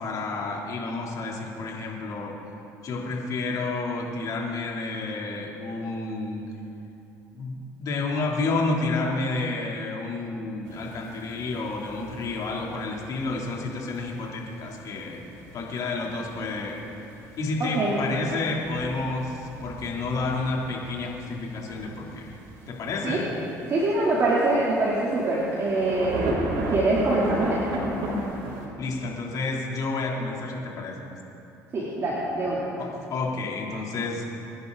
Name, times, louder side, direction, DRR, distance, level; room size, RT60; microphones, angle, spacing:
voice 1, 0.0-2.4 2.8-6.4 7.3-15.2 15.5-16.8 17.4-22.4 22.7-23.3 28.8-31.1 32.8-34.2, left 3 dB, 60° left, -2 dB, 3.6 m, -30 dB
sound 1, 10.6-28.7, right 1 dB, 80° right, 4.2 m, -37 dB
voice 2, 17.6-18.0 23.0-23.2 23.7-27.6 31.7-32.7, right 2 dB, 45° right, -7 dB, 3.6 m, -24 dB
28.0 x 11.0 x 4.2 m, 3.0 s
supercardioid pair, 80°, 7 cm